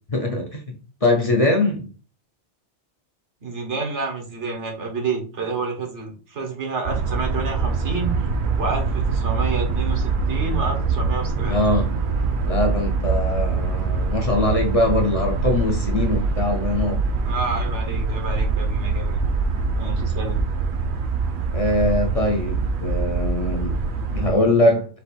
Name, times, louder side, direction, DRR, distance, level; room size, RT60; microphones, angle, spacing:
voice 1, 0.1-0.6 1.0-1.9 11.5-11.9 12.5-17.0 21.5-23.8 24.1-24.9, left 1 dB, 35° left, 2 dB, 0.7 m, -22 dB
voice 2, 3.4-8.2 8.6-11.6 17.2-19.2 19.8-20.5, right 4 dB, 80° right, 1 dB, 1.5 m, -29 dB
sound 1, 6.9-24.3, right 4 dB, 55° right, 0.7 m, -24 dB
4.3 x 2.6 x 4.1 m, 0.38 s
omnidirectional pair, 1.2 m